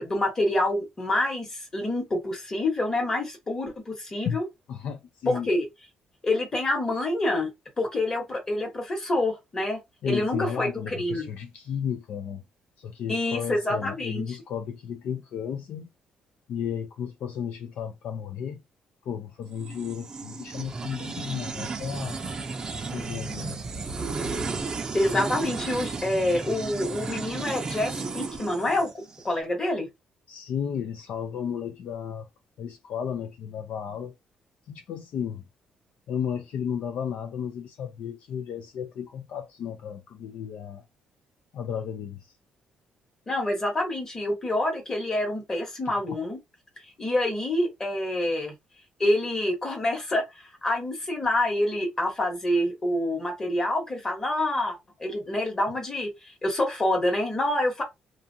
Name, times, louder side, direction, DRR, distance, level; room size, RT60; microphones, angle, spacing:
voice 1, 0.0-4.4 5.3-5.6 6.2-10.7 11.0-11.3 13.1-14.3 24.9-28.9 29.2-29.9 43.3-46.4 47.0-48.5 49.0-57.8, left 1 dB, 25° left, 1.2 m, -27 dB
voice 2, 4.7-5.5 10.0-12.4 12.8-15.9 16.5-18.6 19.0-22.2 22.9-23.6 30.3-32.3 32.6-34.1 34.7-35.4 36.1-40.8 41.5-42.3, left 8 dB, 70° left, 0.4 m, -33 dB
sound 1, 19.6-29.3, right 4 dB, 30° right, 0.5 m, -34 dB
2.5 x 2.4 x 2.6 m
cardioid pair, 125°, 2 cm